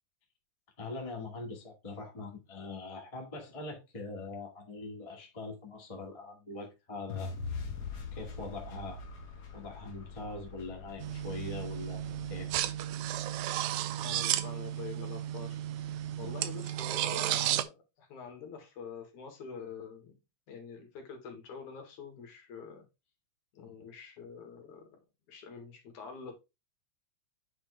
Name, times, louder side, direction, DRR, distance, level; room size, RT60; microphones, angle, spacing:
voice 1, 0.8-7.3 8.1-9.0 9.5-12.0 12.3-12.5 16.2-16.4, left 3 dB, 15° left, 1.5 m, -42 dB
sound 1, 7.1-13.3, left 5 dB, 45° left, 1.5 m, -43 dB
sound 2, 11.0-17.6, right 12 dB, 80° right, 1.9 m, -33 dB
voice 2, 14.0-15.6 16.2-20.2 20.5-22.8 23.5-24.9 25.3-26.3, left 5 dB, 75° left, 3.2 m, -46 dB
9.2 x 4.3 x 3.3 m
omnidirectional pair, 3.5 m